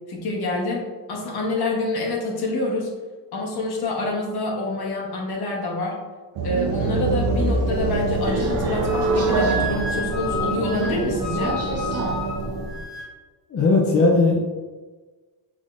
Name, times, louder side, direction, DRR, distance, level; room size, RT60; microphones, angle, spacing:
voice 1, 0.1-2.9 3.3-6.0 6.4-11.6, left 2 dB, 55° left, -1 dB, 1.1 m, -27 dB
sound 1, 6.4-12.6, right 3 dB, 85° right, 0.8 m, -25 dB
Subway metro underground, 7.7-12.9, right 2 dB, 35° right, 0.7 m, -29 dB
Wind instrument woodwind instrument, 8.8-13.1, left 2 dB, ahead, 1.0 m, -32 dB
voice 2, 13.5-14.4, left 3 dB, 35° left, -1 dB, 0.5 m, -17 dB
5.7 x 3.6 x 2.5 m, 1.3 s
cardioid pair, 175°, 44 cm